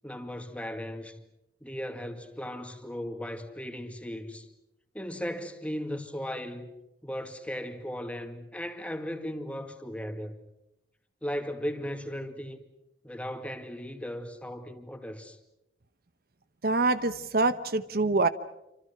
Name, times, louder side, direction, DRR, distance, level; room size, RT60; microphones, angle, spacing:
voice 1, 0.0-1.2 1.6-4.5 4.9-6.7 7.0-10.4 11.2-12.6 13.0-15.4, equal, 10° left, 2.2 m, -37 dB
voice 2, 16.6-18.3, right 3 dB, 60° right, 1.0 m, -25 dB
28.0 x 26.0 x 6.0 m
head